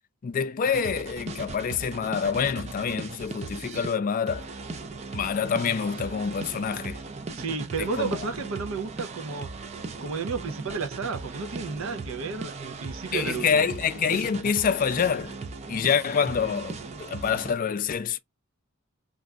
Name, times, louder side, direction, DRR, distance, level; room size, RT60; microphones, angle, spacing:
voice 1, 0.2-4.5 5.1-7.0 7.8-8.3 13.1-15.4 15.7-18.2, left 6 dB, 40° left, 0.3 m, -26 dB
sound 1, 0.6-4.0 4.3-17.5, right 3 dB, 30° right, 0.4 m, -38 dB
voice 2, 7.4-9.5 10.0-13.6, right 4 dB, 75° right, 0.6 m, -32 dB
3.2 x 2.5 x 2.3 m
head